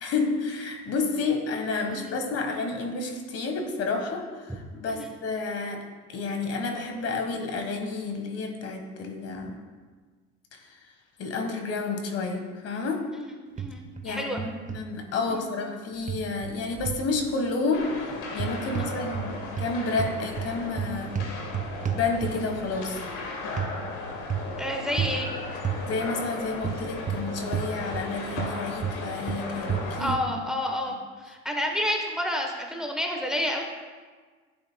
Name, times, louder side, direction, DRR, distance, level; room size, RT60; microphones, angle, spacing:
voice 1, 0.0-5.8 6.1-9.6 11.2-13.0 14.0-21.2 21.9-23.0 25.8-30.4, left 3 dB, 50° left, 4 dB, 1.5 m, -30 dB
voice 2, 13.2-14.4 15.3-15.5 18.7-18.9 24.6-25.3 30.0-33.6, left 1 dB, ahead, 2 dB, 1.0 m, -30 dB
sound 1, 13.6-14.1 14.4-14.8 16.1-17.1 18.3-19.3 19.6-22.6 23.6-23.7 24.3-24.6 25.0-25.2 25.6-25.8 26.6-28.1 28.4-30.3, right 7 dB, 25° right, 0.7 m, -31 dB
sound 2, 17.7-30.0, left 3 dB, 65° left, 1.9 m, -36 dB
11.5 x 8.5 x 2.3 m, 1.5 s
supercardioid pair, 85°, 32 cm